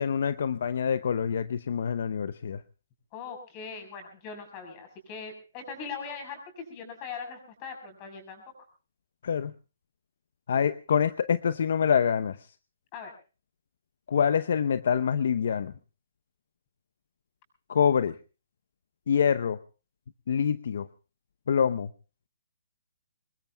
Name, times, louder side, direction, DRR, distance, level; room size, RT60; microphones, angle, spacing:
voice 1, 0.0-2.6 9.2-9.5 10.5-12.4 14.1-15.7 17.7-18.2 19.1-19.6 20.3-20.9 21.5-21.9, left 7 dB, 60° left, 14 dB, 0.8 m, -25 dB
voice 2, 3.1-8.4 12.9-13.1, left 5 dB, 25° left, 5 dB, 6.5 m, -40 dB
25.5 x 20.5 x 2.2 m, 0.35 s
hypercardioid pair, 165°, 0 cm